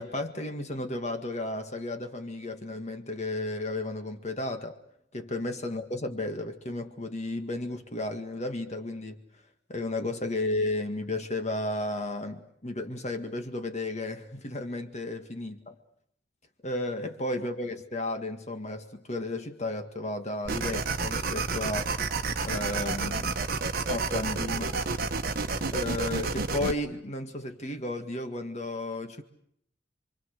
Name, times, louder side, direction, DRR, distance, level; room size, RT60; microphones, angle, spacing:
voice 1, 0.0-4.8 5.1-9.2 9.7-15.7 16.6-21.9 22.4-23.3 23.9-24.8 25.7-29.2, left 2 dB, 40° left, 6 dB, 1.9 m, -33 dB
sound 1, 20.5-26.7, right 3 dB, 55° right, 1.3 m, -30 dB
28.5 x 24.0 x 6.6 m, 0.70 s
head